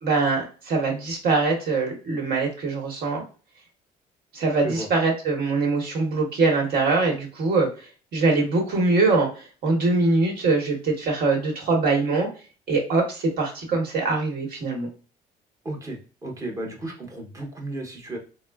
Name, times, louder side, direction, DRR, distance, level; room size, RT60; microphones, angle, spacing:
voice 1, 0.0-3.2 4.3-12.3 12.7-14.9, right 3 dB, 60° right, 0 dB, 1.2 m, -23 dB
voice 2, 15.6-18.2, right 2 dB, 20° right, 0 dB, 0.9 m, -34 dB
3.5 x 2.0 x 2.3 m, 0.36 s
cardioid pair, 110°, 17 cm